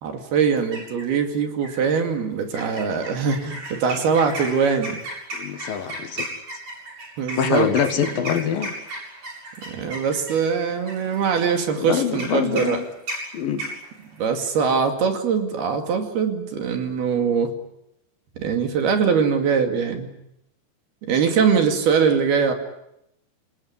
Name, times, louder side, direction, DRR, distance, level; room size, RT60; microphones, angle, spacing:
voice 1, 0.0-5.0 7.2-7.7 9.7-12.8 14.2-17.5 18.4-20.1 21.0-22.5, right 6 dB, 65° right, 5 dB, 4.3 m, -22 dB
sound 1, 0.5-1.2 1.6-2.0 2.5-14.5, right 1 dB, 40° right, 9.3 m, -35 dB
voice 2, 5.3-6.3 7.4-8.7 11.8-12.8 13.3-13.6, left 8 dB, 60° left, 8 dB, 3.0 m, -24 dB
28.0 x 19.5 x 9.8 m, 0.80 s
omnidirectional pair, 5.1 m